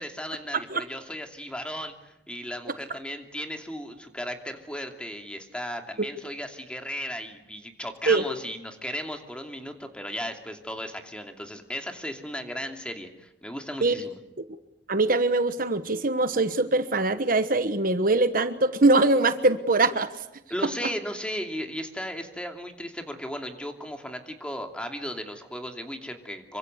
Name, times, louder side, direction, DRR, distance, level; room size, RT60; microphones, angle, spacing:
voice 1, 0.0-14.2 20.5-26.6, equal, 5° left, 5 dB, 2.7 m, -36 dB
voice 2, 14.9-20.1, right 2 dB, 50° right, 11 dB, 1.2 m, -22 dB
26.5 x 24.0 x 8.1 m, 0.87 s
head